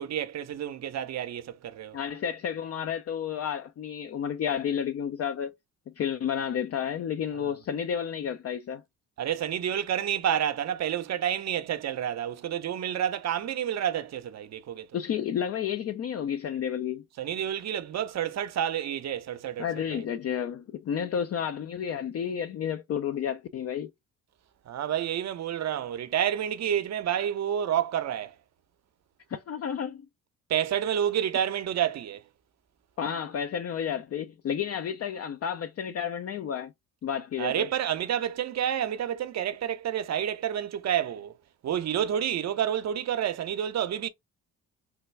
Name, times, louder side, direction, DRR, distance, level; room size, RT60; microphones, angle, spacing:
voice 1, 0.0-2.0 7.4-7.6 9.2-14.9 17.2-20.0 24.7-28.3 30.5-32.2 37.4-41.3 41.6-44.1, right 10 dB, 45° right, 0.7 m, -29 dB
voice 2, 1.9-5.5 6.0-8.8 14.9-17.1 19.6-23.9 29.3-30.0 33.0-36.7 37.0-37.7, left 8 dB, 40° left, 0.5 m, -31 dB
3.4 x 2.2 x 3.2 m
supercardioid pair, 60°, 37 cm